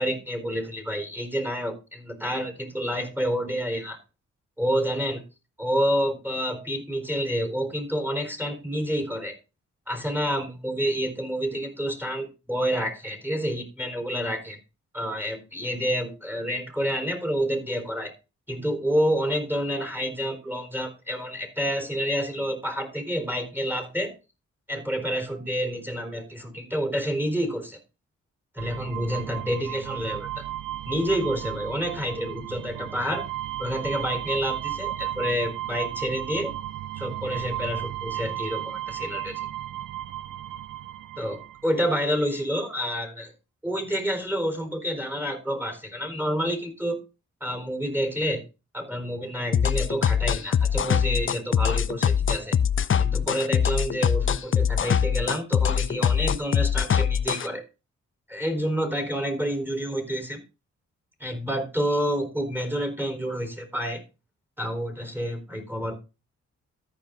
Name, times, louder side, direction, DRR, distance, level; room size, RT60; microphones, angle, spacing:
voice 1, 0.0-4.0 4.6-5.2 5.6-9.3 9.9-14.6 14.9-18.1 18.5-24.1 24.7-27.8 28.5-30.4 30.9-33.2 33.6-36.5 37.0-39.4 41.2-43.3 43.6-47.0 47.4-48.4 48.7-52.6 53.0-57.6 58.3-60.4 61.2-64.0 64.6-66.0, equal, 5° right, 6 dB, 4.2 m, -28 dB
sound 1, 28.6-42.0, right 13 dB, 90° right, 0.5 m, -34 dB
sound 2, 49.5-57.5, left 8 dB, 40° left, 0.5 m, -23 dB
14.0 x 5.2 x 3.9 m, 0.29 s
supercardioid pair, 45°, 32 cm